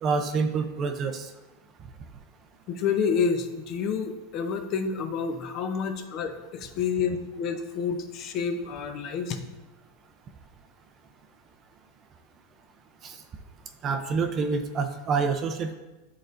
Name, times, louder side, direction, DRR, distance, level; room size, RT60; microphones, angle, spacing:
voice 1, 0.0-1.3 13.0-13.2 13.8-15.8, right 4 dB, 25° right, 7 dB, 0.5 m, -27 dB
voice 2, 2.7-9.4, left 6 dB, 40° left, 7 dB, 0.6 m, -29 dB
11.0 x 3.9 x 2.5 m, 1.1 s
supercardioid pair, 155°, 0 cm